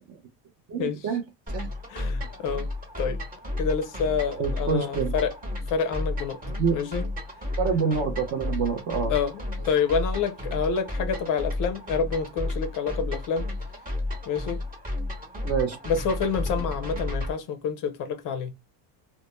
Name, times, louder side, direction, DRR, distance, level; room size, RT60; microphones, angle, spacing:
voice 1, 0.7-1.2 1.5-1.7 4.4-5.1 6.6-6.8 7.6-9.1 15.4-15.8, right 5 dB, 35° right, 0.4 m, -26 dB
sound 1, 1.5-17.3, left 2 dB, 15° right, 1.0 m, -32 dB
voice 2, 1.9-2.7 3.0-3.2 3.6-5.3 5.7-6.4 6.7-7.1 9.1-13.5 14.3-14.6 15.9-18.5, left 6 dB, 45° left, 0.4 m, -28 dB
2.1 x 2.0 x 2.9 m
cardioid pair, 125°, 48 cm